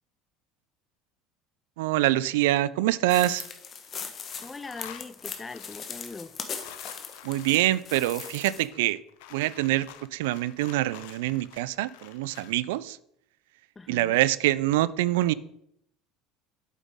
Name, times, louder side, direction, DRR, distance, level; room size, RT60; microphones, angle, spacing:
voice 1, 1.8-3.4 7.2-9.0 9.3-13.0 13.9-15.3, right 15 dB, 80° right, 0.3 m, -25 dB
sound 1, 3.1-8.7, left 6 dB, 40° left, 1.1 m, -40 dB
sound 2, 3.3-3.9 4.2-12.6, left 12 dB, 75° left, 0.6 m, -49 dB
voice 2, 4.4-6.4 13.8-14.2, left 3 dB, 20° left, 0.4 m, -41 dB
8.2 x 7.1 x 3.6 m
hypercardioid pair, 85°, 0 cm